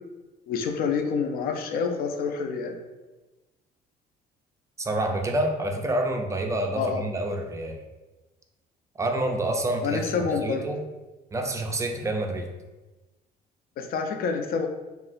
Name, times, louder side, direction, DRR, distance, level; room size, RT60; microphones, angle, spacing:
voice 1, 0.5-2.8 6.8-7.0 9.8-10.7 13.8-14.7, left 5 dB, 60° left, 5 dB, 0.4 m, -27 dB
voice 2, 4.8-7.8 9.0-10.1 10.4-10.8 11.3-12.5, right 1 dB, 15° right, 3 dB, 0.4 m, -28 dB
2.4 x 2.0 x 3.8 m, 1.1 s
cardioid pair, 110°, 17 cm